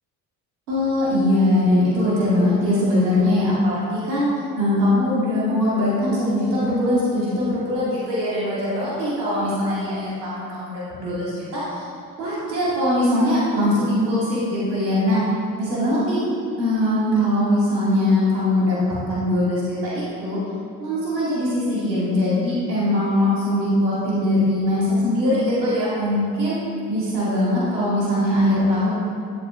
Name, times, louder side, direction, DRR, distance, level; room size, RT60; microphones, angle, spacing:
voice 1, 0.7-4.3 4.6-11.8 12.2-15.2 15.6-16.3 16.6-18.8 19.1-20.4 20.8-26.6 26.9-28.9, left 1 dB, 80° right, -8 dB, 2.2 m, -21 dB
11.5 x 8.8 x 2.5 m, 2.3 s
figure-of-eight pair, 45°, 49 cm